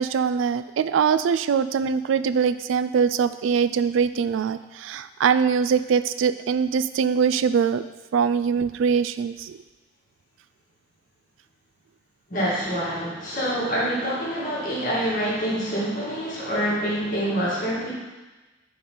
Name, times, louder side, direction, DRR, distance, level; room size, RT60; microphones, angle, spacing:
voice 1, 0.0-7.8 8.1-9.6, right 6 dB, 90° right, 13 dB, 0.3 m, -22 dB
voice 2, 12.3-17.9, equal, 45° left, -6 dB, 1.9 m, -26 dB
10.0 x 4.0 x 3.9 m, 1.2 s
head